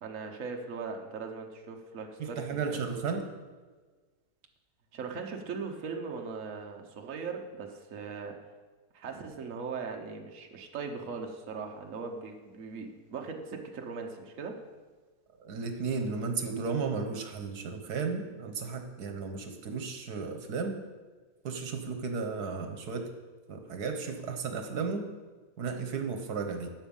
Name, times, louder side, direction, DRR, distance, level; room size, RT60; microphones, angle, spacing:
voice 1, 0.0-2.8 4.9-8.4 8.9-14.6, right 5 dB, 55° right, 2 dB, 1.3 m, -39 dB
voice 2, 2.2-3.3 15.4-20.8 21.4-23.1 23.5-25.1 25.6-26.7, right 5 dB, 75° right, 5 dB, 1.6 m, -34 dB
12.0 x 8.1 x 5.5 m, 1.4 s
omnidirectional pair, 1.7 m